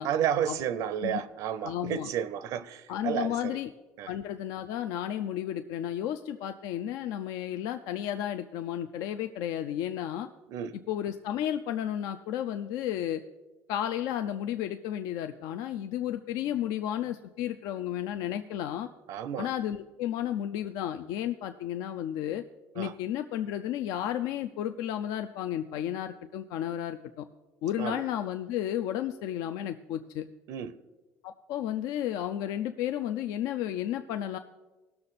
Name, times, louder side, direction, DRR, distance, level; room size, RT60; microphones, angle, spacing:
voice 1, 0.0-3.6 4.0-4.1 10.5-10.8 19.1-19.5 22.8-22.9 27.8-28.0 30.5-30.8, right 9 dB, 65° right, 0.5 m, -31 dB
voice 2, 1.6-2.1 2.9-3.7 4.1-10.3 10.9-13.2 13.7-18.9 19.4-22.4 22.7-27.3 27.6-30.3 31.2-34.4, left 11 dB, 80° left, 0.4 m, -32 dB
18.0 x 6.7 x 4.1 m
cardioid pair, 160°, 6 cm